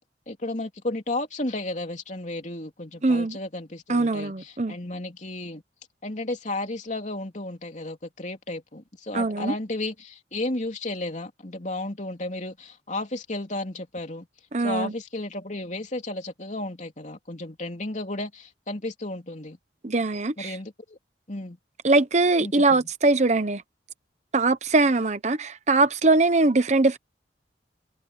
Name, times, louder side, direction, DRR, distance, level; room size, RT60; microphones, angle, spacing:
voice 1, 0.3-5.6 6.0-14.3 14.6-19.6 20.4-21.0 21.3-21.6 22.4-22.9, left 2 dB, 40° left, 3.3 m, -33 dB
voice 2, 3.0-3.4 3.9-4.8 9.1-9.5 14.5-14.9 19.8-20.6 21.8-23.6 24.3-27.0, right 3 dB, 40° right, 0.9 m, -22 dB
head